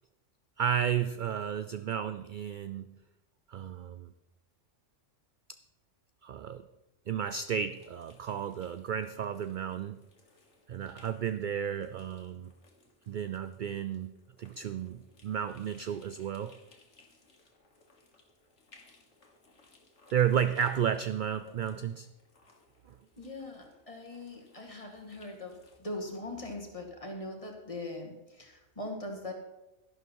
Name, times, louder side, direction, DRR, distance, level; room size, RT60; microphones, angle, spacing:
voice 1, 0.6-2.9 3.5-4.1 6.2-6.7 7.1-10.0 10.7-12.5 13.1-16.6 20.1-22.1, right 8 dB, 60° right, 12 dB, 0.5 m, -32 dB
sound 1, 7.7-25.8, left 3 dB, 70° left, 2.0 m, -62 dB
voice 2, 23.2-29.3, left 2 dB, 25° left, 2 dB, 2.0 m, -41 dB
12.0 x 11.5 x 4.6 m, 0.98 s
omnidirectional pair, 1.3 m